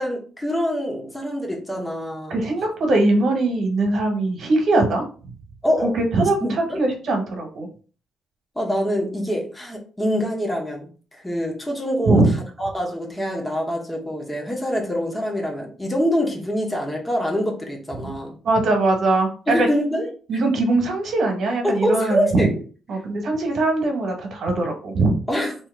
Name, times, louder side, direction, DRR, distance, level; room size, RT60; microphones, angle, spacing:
voice 1, 0.0-2.5 5.6-5.9 6.4-6.8 8.5-18.4 19.5-20.1 21.6-22.6 25.3-25.6, equal, 10° left, 1.0 m, -25 dB
voice 2, 2.3-5.0 5.8-6.4 6.8-7.7 12.1-12.3 18.4-19.7 20.3-22.5 22.9-25.1, right 2 dB, 60° right, 1.2 m, -21 dB
2.8 x 2.8 x 3.7 m
cardioid pair, 90°, 0 cm